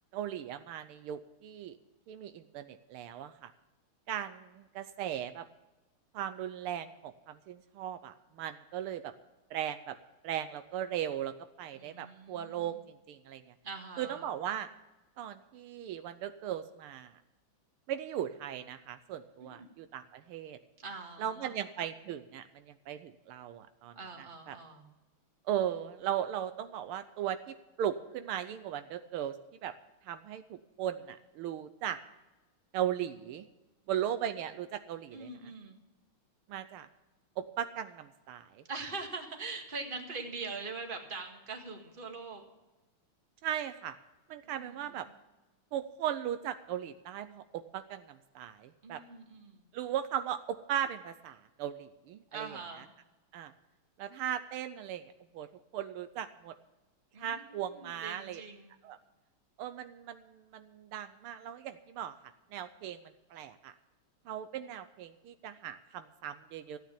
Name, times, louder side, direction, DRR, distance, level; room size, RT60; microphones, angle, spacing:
voice 1, 0.1-1.8 2.1-3.5 4.1-5.5 6.1-9.1 9.5-10.0 10.2-13.4 14.0-14.7 15.2-17.1 17.9-20.6 21.2-24.6 25.5-29.4 29.6-29.7 30.1-32.0 32.7-33.5 33.9-35.3 36.5-36.9 37.4-38.6 43.4-44.0 44.3-45.1 45.7-49.0 49.7-52.6 53.3-53.5 54.0-55.0 55.3-56.5 57.2-58.4 58.8-59.0 59.6-62.2 62.5-63.0 63.3-63.7 64.3-66.8, right 10 dB, 80° right, 10 dB, 1.6 m, -37 dB
voice 2, 11.7-12.8 13.6-14.3 19.4-19.7 20.8-21.6 24.0-24.8 35.1-35.8 38.7-42.4 44.4-45.1 48.8-49.7 52.3-52.9 57.1-58.7, right 4 dB, 25° right, 3 dB, 1.8 m, -43 dB
15.0 x 9.1 x 7.2 m, 1.1 s
omnidirectional pair, 2.4 m